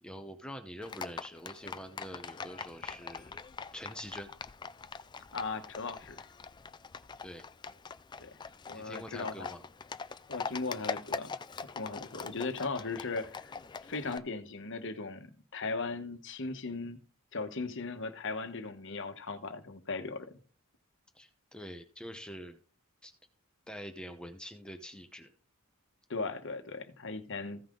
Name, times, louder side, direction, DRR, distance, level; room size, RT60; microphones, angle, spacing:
voice 1, 0.0-3.4 3.7-4.3 7.2-7.4 8.7-9.6 21.1-22.6 23.0-23.1 23.7-25.3, equal, 5° left, 0.8 m, -45 dB
Livestock farm animals working animals, 0.8-14.2, left 5 dB, 20° left, 0.3 m, -43 dB
voice 2, 5.3-6.2 8.2-8.3 8.7-9.5 10.3-11.4 11.7-13.6 13.8-17.0 17.3-20.3 26.1-27.6, left 3 dB, 60° left, 1.2 m, -38 dB
15.0 x 5.6 x 3.8 m
head